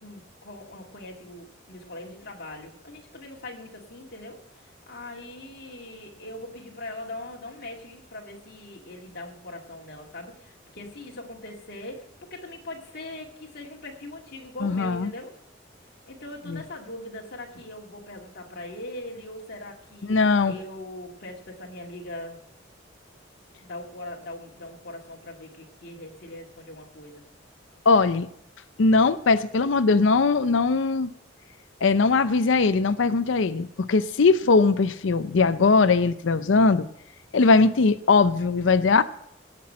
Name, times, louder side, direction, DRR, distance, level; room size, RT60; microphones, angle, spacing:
voice 1, 0.0-15.3 16.1-20.2 20.5-22.4 23.6-27.2, left 1 dB, 55° left, -2 dB, 2.2 m, -41 dB
voice 2, 14.6-15.1 16.5-16.6 20.1-20.5 27.9-28.3 28.8-31.1 31.8-36.9 37.3-39.0, left 4 dB, 70° left, 14 dB, 0.5 m, -20 dB
17.5 x 6.1 x 7.5 m, 0.74 s
head